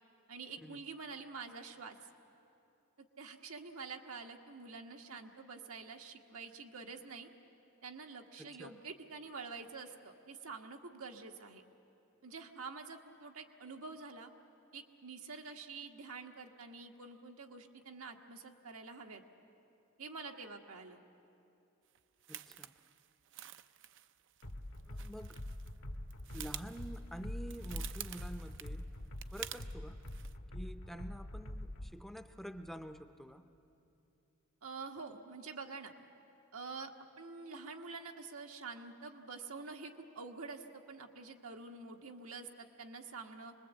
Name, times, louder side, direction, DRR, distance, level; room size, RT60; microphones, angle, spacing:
voice 1, 0.3-2.0 3.0-7.3 7.8-11.6 12.2-14.3 14.7-19.2 20.0-21.0 34.6-35.9 36.5-43.5, right 4 dB, 85° right, 3 dB, 1.4 m, -47 dB
voice 2, 8.4-8.7 22.3-22.7 24.9-25.4 26.3-28.9 29.3-30.0 30.5-33.4, equal, ahead, 8 dB, 0.6 m, -48 dB
sound 1, 21.9-25.8 26.0-29.7 30.0-30.4, right 12 dB, 60° right, 0.5 m, -49 dB
sound 2, 24.4-31.9, left 1 dB, 75° left, 1.5 m, -44 dB
25.5 x 20.5 x 8.2 m, 2.8 s
head